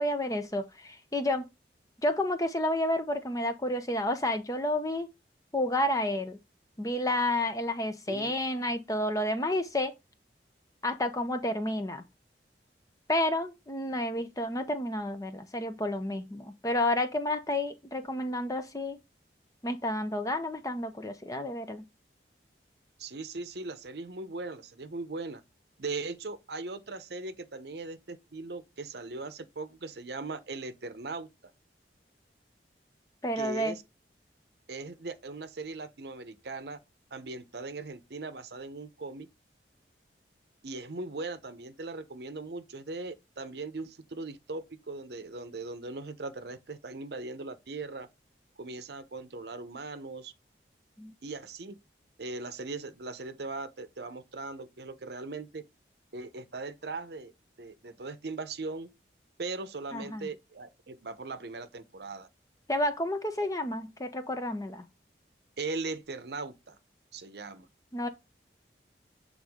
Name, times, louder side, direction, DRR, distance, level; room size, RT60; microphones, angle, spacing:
voice 1, 0.0-1.5 2.0-5.1 5.5-6.4 6.8-9.9 10.8-12.0 13.1-19.0 19.6-21.8 33.2-33.8 51.0-51.1 59.9-60.3 62.7-64.9 67.9-68.1, left 1 dB, 20° left, 0.7 m, -30 dB
voice 2, 23.0-25.4 25.8-31.3 33.4-33.8 34.7-36.8 37.1-39.3 40.6-48.1 48.6-50.3 51.2-51.8 52.2-55.6 56.1-57.3 57.6-58.9 59.4-62.3 65.6-66.8 67.1-67.7, right 3 dB, 65° right, 0.7 m, -39 dB
7.9 x 3.7 x 3.5 m
head